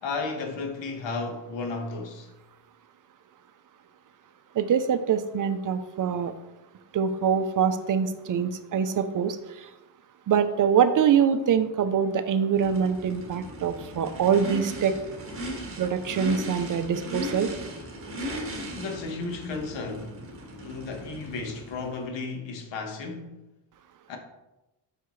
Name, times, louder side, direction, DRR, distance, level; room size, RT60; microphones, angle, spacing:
voice 1, 0.0-2.3 18.7-20.1 20.6-23.4 24.1-24.2, left 3 dB, 75° left, 1.4 m, -33 dB
voice 2, 4.5-6.3 6.9-9.7 10.3-15.0 15.8-17.5, right 7 dB, 45° right, 0.6 m, -24 dB
Race car auto racing / Idling / Accelerating revving vroom, 12.5-22.0, equal, 30° right, 1.7 m, -37 dB
7.9 x 5.8 x 3.2 m
cardioid pair, 120°, 45 cm